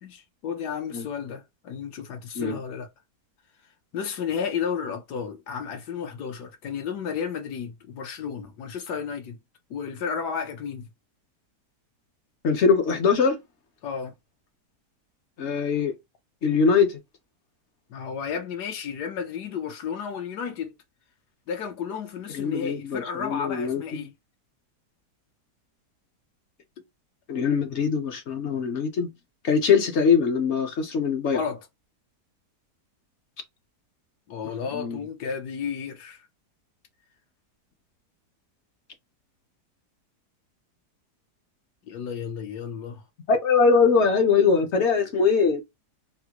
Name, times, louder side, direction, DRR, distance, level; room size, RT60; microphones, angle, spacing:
voice 1, 0.0-2.9 3.9-9.4 9.7-10.9 13.8-14.1 17.9-20.7 21.5-24.1 31.3-31.7 34.3-36.3 41.9-43.0, left 7 dB, 75° left, 1.3 m, -32 dB
voice 2, 12.4-13.4 15.4-15.9 16.4-17.0 22.3-24.1 27.3-29.1 29.4-31.4 34.7-35.0 43.3-45.6, left 5 dB, 60° left, 0.8 m, -22 dB
3.7 x 2.1 x 2.8 m
omnidirectional pair, 1.8 m